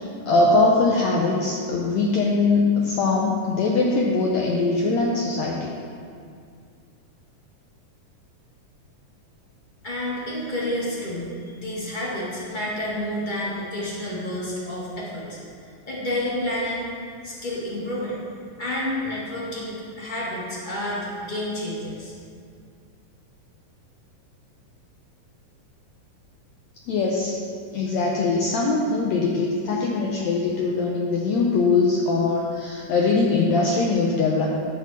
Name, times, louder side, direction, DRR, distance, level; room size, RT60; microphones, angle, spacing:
voice 1, 0.3-5.7 26.9-27.4 27.7-34.5, left 3 dB, 75° left, -2 dB, 1.6 m, -21 dB
voice 2, 9.8-15.4 15.9-16.9 17.2-18.2 18.6-22.1, left 1 dB, 20° left, -6 dB, 1.4 m, -29 dB
11.0 x 4.2 x 7.4 m, 2.2 s
omnidirectional pair, 3.9 m